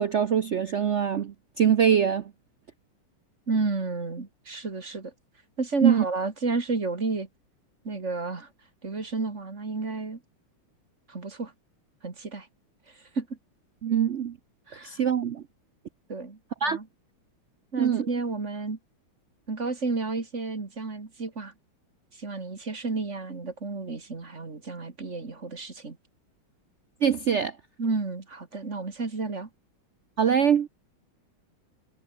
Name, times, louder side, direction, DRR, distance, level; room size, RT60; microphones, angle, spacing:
voice 1, 0.0-2.3 5.8-6.0 13.8-14.4 14.7-15.4 16.6-16.8 17.8-18.1 27.0-27.5 30.2-30.7, right 8 dB, 80° right, 0.6 m, -23 dB
voice 2, 3.5-5.1 5.6-7.3 7.8-8.5 8.8-10.2 11.1-11.5 12.0-12.5 12.9-13.4 14.7-15.0 16.1-16.9 17.7-18.8 19.5-21.5 22.1-26.0 27.8-29.5, right 3 dB, 35° right, 2.7 m, -31 dB
omnidirectional pair, 2.3 m